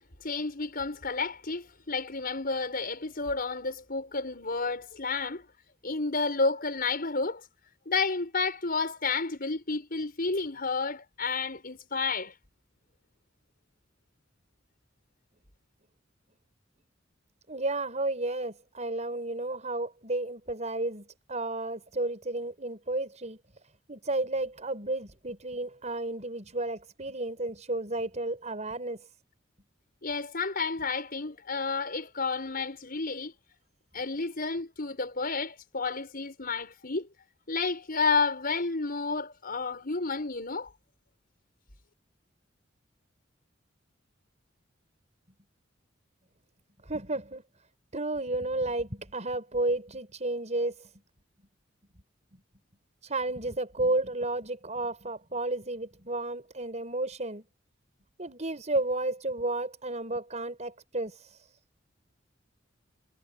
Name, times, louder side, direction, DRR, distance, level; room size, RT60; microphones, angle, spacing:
voice 1, 0.2-5.4 5.8-7.5 7.9-12.3 30.0-33.3 33.9-37.1 37.5-40.7, left 4 dB, 50° left, 6.1 m, -31 dB
voice 2, 17.5-23.4 23.9-29.0 46.8-47.4 47.9-50.9 53.0-57.4 58.2-61.4, right 2 dB, 35° right, 6.0 m, -32 dB
head